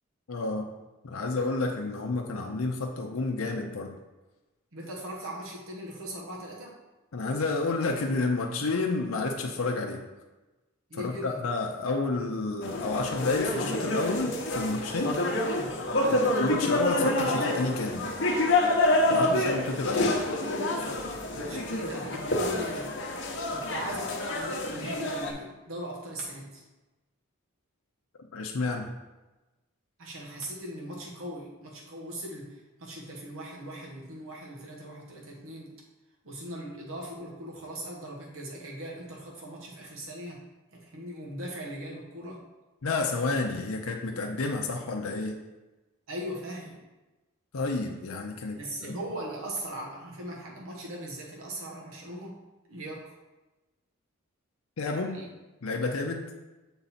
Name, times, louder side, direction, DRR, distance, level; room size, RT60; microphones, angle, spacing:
voice 1, 0.3-0.7 1.0-4.0 7.1-10.0 10.9-15.2 16.0-18.1 19.1-20.1 28.3-28.9 42.8-45.3 47.5-49.0 54.8-55.2 55.6-56.2, left 3 dB, 85° left, 2 dB, 0.6 m, -30 dB
voice 2, 4.7-6.8 10.9-11.4 16.0-16.3 19.1-19.5 19.9-20.1 20.5-20.9 21.3-22.9 23.5-26.6 30.0-35.7 36.2-40.4 40.7-42.4 46.1-46.8 48.5-52.4 52.7-53.1 55.0-55.3, right 1 dB, 80° right, -2 dB, 1.2 m, -39 dB
sound 1, 12.6-25.3, left 1 dB, 55° left, 0.9 m, -28 dB
7.0 x 3.9 x 4.2 m, 1.1 s
head